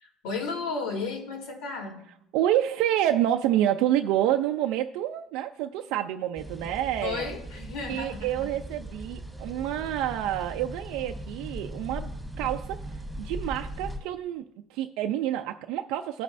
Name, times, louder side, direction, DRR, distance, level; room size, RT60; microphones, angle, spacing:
voice 1, 0.0-2.0 7.0-8.5, left 4 dB, 80° left, 1 dB, 2.5 m, -34 dB
voice 2, 2.3-7.2 7.9-12.1 12.4-14.4 14.7-16.2, right 12 dB, 75° right, 5 dB, 0.4 m, -28 dB
sound 1, 6.4-14.0, right 1 dB, 5° right, 1.5 m, -39 dB
15.5 x 5.4 x 2.6 m, 0.74 s
cardioid pair, 125°, 0 cm